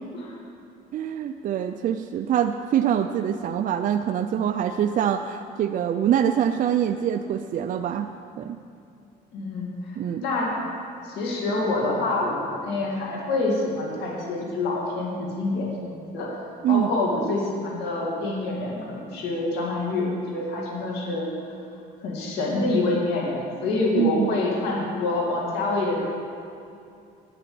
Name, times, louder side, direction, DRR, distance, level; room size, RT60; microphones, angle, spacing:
voice 1, 0.9-8.1 8.4-8.6 10.0-10.2 16.6-16.9 24.0-24.3, right 9 dB, 50° right, 6 dB, 0.5 m, -24 dB
voice 2, 9.3-10.6 11.0-16.3 16.7-21.3 22.0-26.0, left 2 dB, 90° left, -2 dB, 2.4 m, -26 dB
9.7 x 7.9 x 7.7 m, 2.5 s
cardioid pair, 110°, 17 cm